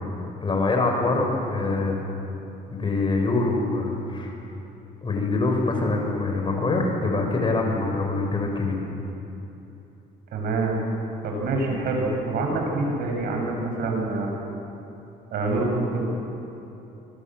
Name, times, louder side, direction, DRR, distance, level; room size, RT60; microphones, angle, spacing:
voice 1, 0.4-2.0 2.7-4.3 5.0-8.8, left 3 dB, 30° left, 2 dB, 5.5 m, -24 dB
voice 2, 10.3-10.8 11.2-14.3 15.3-16.0, right 2 dB, 65° right, 1 dB, 7.2 m, -26 dB
25.0 x 23.5 x 7.7 m, 3.0 s
cardioid pair, 110°, 17 cm